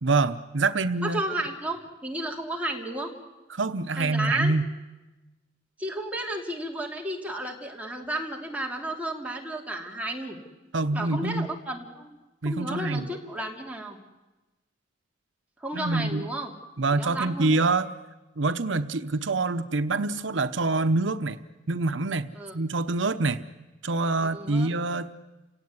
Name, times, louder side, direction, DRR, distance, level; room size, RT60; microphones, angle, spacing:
voice 1, 0.0-1.2 3.5-4.7 10.7-11.5 12.4-13.1 15.7-16.3 16.8-17.9 18.4-21.4 21.7-23.4 23.8-25.1, right 3 dB, 85° right, 11 dB, 0.9 m, -26 dB
voice 2, 1.0-3.1 4.0-4.5 5.8-10.4 10.9-12.2 12.4-14.0 15.6-16.5 16.9-17.6 22.3-22.6 24.2-24.7, right 1 dB, 10° right, 0 dB, 3.1 m, -32 dB
29.5 x 17.5 x 9.7 m, 1.1 s
head